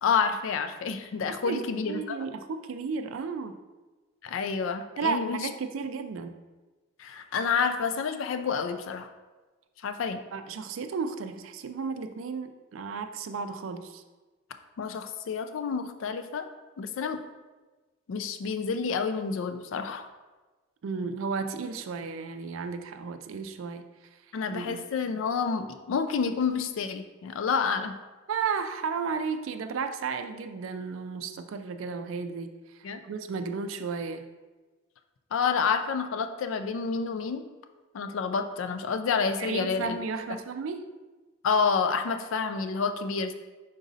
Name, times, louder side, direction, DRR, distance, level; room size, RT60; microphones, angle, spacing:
voice 1, 0.0-2.2 4.2-5.5 7.0-9.1 9.8-10.2 14.8-16.5 16.8-17.2 18.1-20.1 24.3-27.9 32.8-33.0 35.3-37.4 37.9-40.0 41.4-43.3, left 5 dB, 70° left, 8 dB, 0.3 m, -29 dB
voice 2, 1.3-3.5 5.0-6.3 10.3-14.0 20.8-23.8 24.5-24.8 28.3-32.8 33.0-34.2 39.4-40.8, right 5 dB, 75° right, 8 dB, 0.4 m, -33 dB
4.9 x 3.9 x 2.6 m, 1.2 s
head